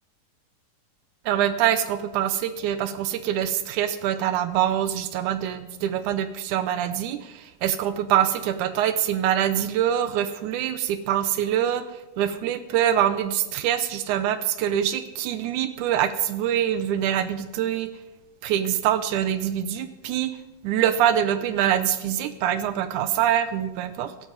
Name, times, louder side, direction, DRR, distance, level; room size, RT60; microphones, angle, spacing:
voice 1, 1.3-11.8 12.2-17.9 18.4-20.3 20.6-24.1, right 10 dB, 75° right, 11 dB, 2.0 m, -24 dB
16.0 x 12.0 x 4.1 m, 1.1 s
omnidirectional pair, 3.9 m